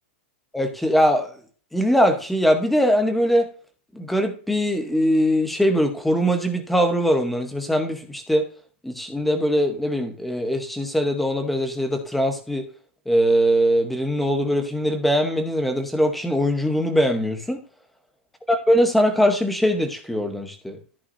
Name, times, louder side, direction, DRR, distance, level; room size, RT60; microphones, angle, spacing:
voice 1, 0.5-1.3 1.7-3.5 3.9-8.5 8.8-12.7 13.1-17.6 18.5-20.8, equal, ahead, 6 dB, 0.9 m, -21 dB
14.0 x 5.8 x 2.6 m, 0.41 s
supercardioid pair, 180°, 7 cm